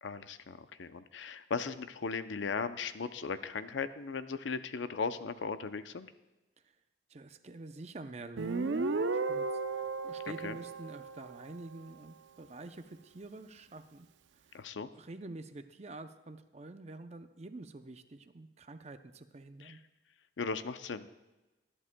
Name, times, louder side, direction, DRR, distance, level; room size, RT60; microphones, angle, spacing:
voice 1, 0.0-6.1 10.4-10.6 14.5-14.9 19.6-19.8 20.4-21.1, left 5 dB, 90° left, 11 dB, 0.5 m, -37 dB
voice 2, 7.1-9.5 9.7-14.1 14.3-14.4 14.7-19.8, right 2 dB, 35° right, 9 dB, 0.5 m, -48 dB
Guitar, 8.4-11.8, right 3 dB, 90° right, 0.6 m, -35 dB
19.5 x 11.0 x 2.2 m, 1.1 s
head